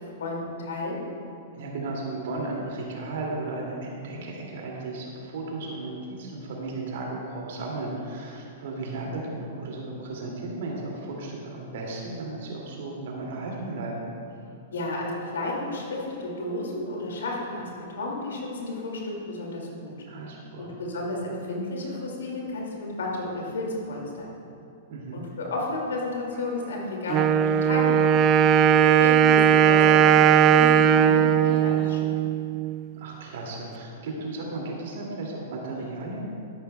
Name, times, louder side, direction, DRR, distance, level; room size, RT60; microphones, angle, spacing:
voice 1, 0.2-1.1 14.7-19.9 20.6-24.4 25.1-28.0 29.0-32.1, left 2 dB, 75° left, -2 dB, 2.2 m, -32 dB
voice 2, 1.5-14.1 20.1-20.7 24.9-25.2 33.0-36.2, right 2 dB, 60° right, -2 dB, 2.3 m, -35 dB
Wind instrument woodwind instrument, 27.1-32.8, right 9 dB, 35° right, 0.3 m, -18 dB
12.5 x 10.5 x 2.2 m, 2.7 s
hypercardioid pair, 105°, 0 cm